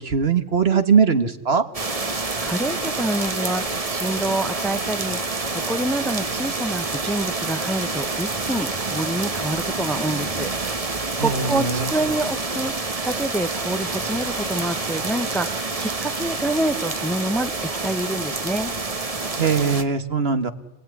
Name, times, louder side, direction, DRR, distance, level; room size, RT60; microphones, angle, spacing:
voice 1, 0.0-1.6 11.2-11.9 19.4-20.5, right 5 dB, 55° right, 10 dB, 1.7 m, -20 dB
sound 1, 1.7-19.8, right 3 dB, 30° right, 1.3 m, -27 dB
voice 2, 2.1-18.7, right 1 dB, ahead, 10 dB, 0.8 m, -27 dB
28.5 x 19.0 x 9.7 m, 1.1 s
omnidirectional pair, 1.3 m